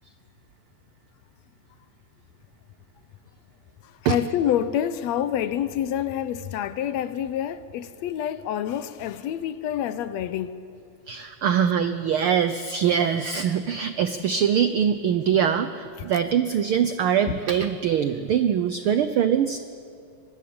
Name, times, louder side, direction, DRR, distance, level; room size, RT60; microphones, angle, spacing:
voice 1, 4.0-10.5 17.3-17.4, left 10 dB, 75° left, 1.8 m, -27 dB
voice 2, 11.1-19.6, right 8 dB, 90° right, 1.1 m, -23 dB
23.5 x 20.0 x 8.7 m
omnidirectional pair, 3.3 m